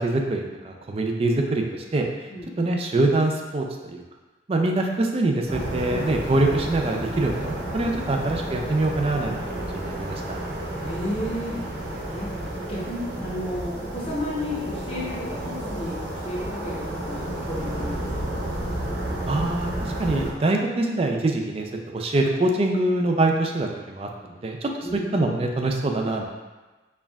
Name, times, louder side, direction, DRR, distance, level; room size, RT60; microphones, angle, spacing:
voice 1, 0.0-2.1 2.6-4.0 4.5-10.4 19.3-26.3, right 2 dB, 30° right, 2 dB, 0.4 m, -24 dB
sound 1, 5.5-20.3, right 1 dB, 90° right, 0.7 m, -31 dB
voice 2, 10.7-12.3 12.7-18.4 24.8-25.1, left 1 dB, 35° left, -5 dB, 0.7 m, -33 dB
4.4 x 2.3 x 3.4 m, 1.2 s
head